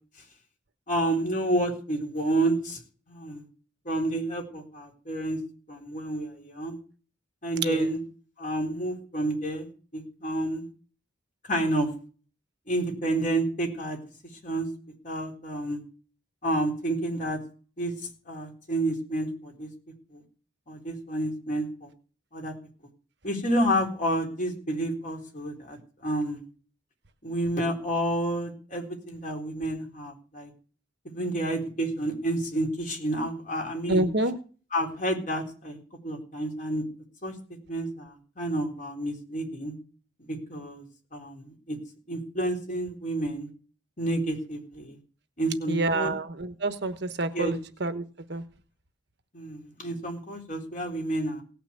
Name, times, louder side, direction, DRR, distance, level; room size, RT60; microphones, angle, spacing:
voice 1, 0.9-2.8 3.1-3.4 3.8-5.4 5.7-6.8 7.4-8.0 8.4-10.7 11.5-11.9 12.7-14.0 14.4-14.7 15.0-15.8 16.4-17.4 17.8-17.9 18.3-19.7 20.1-20.2 20.7-21.9 22.3-22.5 23.2-26.4 27.2-30.5 31.0-34.1 34.7-36.8 37.2-37.3 37.7-39.8 40.3-40.8 41.1-41.8 42.1-43.5 44.0-45.0 45.4-46.1 47.3-47.5 49.3-51.4, right 1 dB, 40° left, 1 dB, 4.0 m, -29 dB
voice 2, 7.5-7.9 33.9-34.4 45.7-48.0 48.3-48.4, right 2 dB, 60° right, 10 dB, 1.2 m, -27 dB
17.5 x 6.0 x 8.4 m, 0.40 s
head